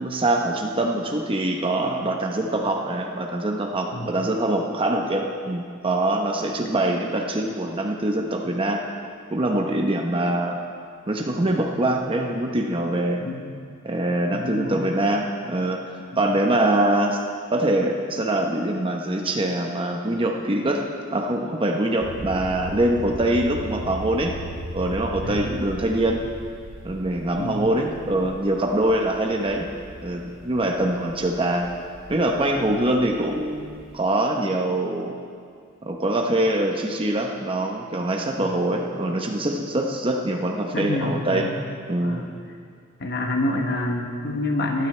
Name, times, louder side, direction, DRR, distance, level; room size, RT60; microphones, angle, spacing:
voice 1, 0.0-8.8 9.3-10.6 11.1-13.2 13.8-15.9 16.2-17.2 17.5-20.9 21.1-24.4 24.7-26.3 26.8-29.7 30.0-31.7 32.1-35.2 35.8-41.5 41.9-42.3, right 1 dB, 25° right, 2 dB, 0.8 m, -24 dB
voice 2, 13.2-13.5 14.3-14.7 25.2-25.5 27.4-27.7 32.7-32.8 40.7-41.6 42.0-42.2 43.0-44.9, left 1 dB, 55° left, 2 dB, 1.1 m, -27 dB
sound 1, 22.0-34.0, right 1 dB, 70° right, 1.1 m, -39 dB
19.5 x 12.0 x 3.3 m, 2.2 s
head